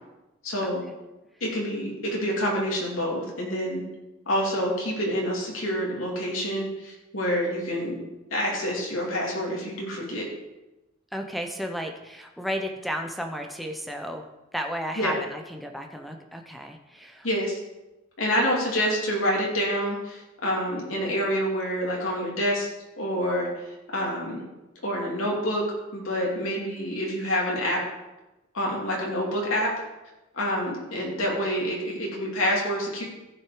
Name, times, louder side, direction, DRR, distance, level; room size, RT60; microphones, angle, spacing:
voice 1, 0.4-0.8 1.4-3.8 4.3-8.0 8.3-10.2 15.0-15.1 17.2-17.5 18.2-22.7 23.0-23.5 23.9-24.4 24.8-25.6 25.9-27.8 28.5-29.7 30.3-33.0, equal, 75° left, -2 dB, 2.6 m, -27 dB
voice 2, 11.1-14.2 14.5-17.3, equal, ahead, 3 dB, 0.7 m, -33 dB
15.0 x 6.0 x 4.9 m, 1.0 s
head